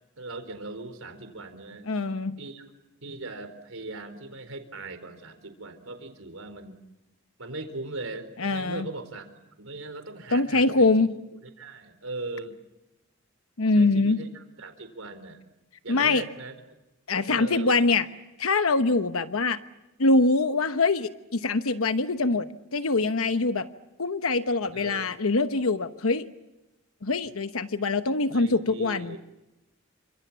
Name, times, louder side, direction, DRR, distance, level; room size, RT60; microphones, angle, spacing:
voice 1, 0.2-1.9 2.4-2.6 3.0-6.8 7.4-9.3 9.6-10.9 11.6-12.6 13.7-15.4 15.8-16.5 17.3-17.8 24.7-25.1 28.3-29.2, right 2 dB, 75° right, 8 dB, 4.3 m, -39 dB
voice 2, 1.9-2.4 8.4-8.9 10.3-11.1 13.6-14.2 15.9-16.3 17.1-18.1 18.4-19.6 20.0-23.7 24.0-26.3 27.0-29.2, left 3 dB, 90° left, 10 dB, 1.0 m, -24 dB
29.5 x 26.0 x 7.4 m, 0.97 s
head